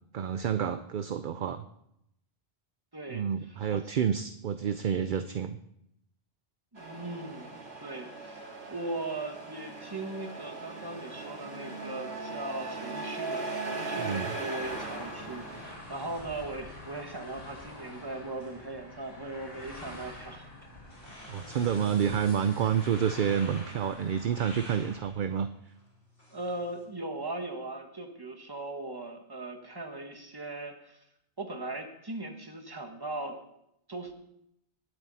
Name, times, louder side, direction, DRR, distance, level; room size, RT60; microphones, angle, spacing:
voice 1, 0.1-1.6 3.1-5.6 14.0-14.3 21.3-25.5, right 8 dB, 55° right, 10 dB, 0.7 m, -29 dB
voice 2, 2.9-3.3 3.7-3.8 6.7-7.5 7.8-20.5 21.2-21.8 26.3-31.0 31.4-33.4 33.9-34.1, right 2 dB, 20° right, 4 dB, 1.5 m, -39 dB
Truck, 6.8-15.7, right 3 dB, 75° right, 2.4 m, -39 dB
sound 1, 14.6-24.9, left 1 dB, 55° left, 4.9 m, -46 dB
sound 2, 15.7-26.8, left 1 dB, 70° left, 4.2 m, -54 dB
19.5 x 8.1 x 4.1 m, 0.77 s
omnidirectional pair, 1.1 m